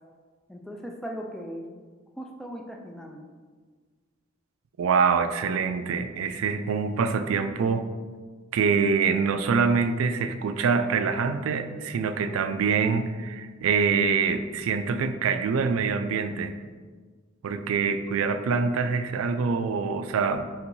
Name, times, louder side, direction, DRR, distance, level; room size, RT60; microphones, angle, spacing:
voice 1, 0.5-1.7 2.2-3.2, equal, ahead, 1 dB, 0.3 m, -38 dB
voice 2, 4.8-7.8 8.5-16.5 17.4-20.4, right 5 dB, 85° right, 9 dB, 0.3 m, -25 dB
4.4 x 3.8 x 2.7 m, 1.5 s
head